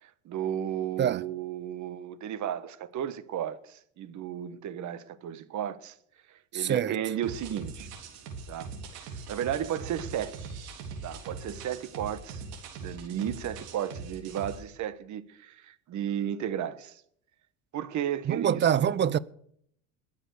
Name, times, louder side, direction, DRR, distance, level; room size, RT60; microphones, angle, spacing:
voice 1, 0.0-5.9 6.3-7.9 8.5-8.7 9.0-10.4 11.0-12.4 12.8-17.0 17.7-18.7, right 10 dB, 50° right, 1.3 m, -34 dB
voice 2, 6.5-6.9 18.3-19.2, right 9 dB, 30° right, 0.6 m, -25 dB
sound 1, 7.2-14.6, right 4 dB, 80° right, 3.6 m, -42 dB
21.5 x 7.3 x 6.6 m
supercardioid pair, 105°, 39 cm